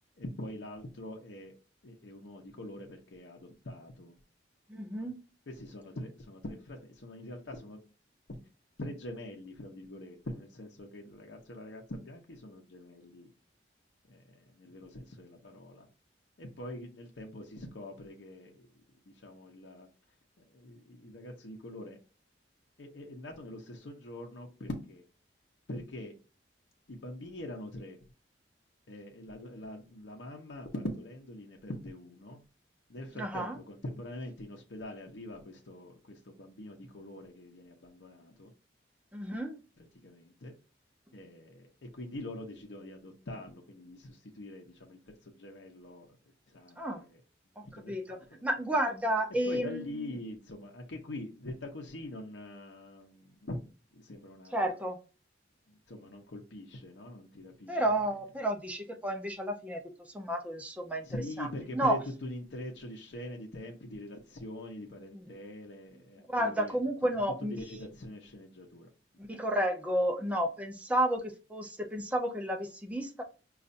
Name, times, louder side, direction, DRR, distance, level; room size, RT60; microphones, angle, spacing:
voice 1, 0.2-1.5 1.8-4.1 5.0-5.1 5.5-7.8 8.3-8.4 8.8-13.3 14.1-15.9 16.4-18.7 19.1-19.9 20.4-22.0 22.8-25.0 25.7-26.2 26.9-28.0 28.9-32.4 32.9-38.5 39.8-40.5 41.1-46.2 46.5-47.2 47.6-48.4 49.5-53.6 53.9-54.8 55.7-58.2 61.0-68.9, left 1 dB, 70° left, 1 dB, 0.7 m, -44 dB
voice 2, 4.7-5.1 33.2-33.6 39.1-39.6 46.8-47.0 47.9-50.1 54.5-55.0 57.7-61.5 61.7-62.0 65.1-65.3 66.3-67.8 69.2-73.2, right 1 dB, 5° right, 2 dB, 0.6 m, -32 dB
5.3 x 2.4 x 2.5 m, 0.33 s
head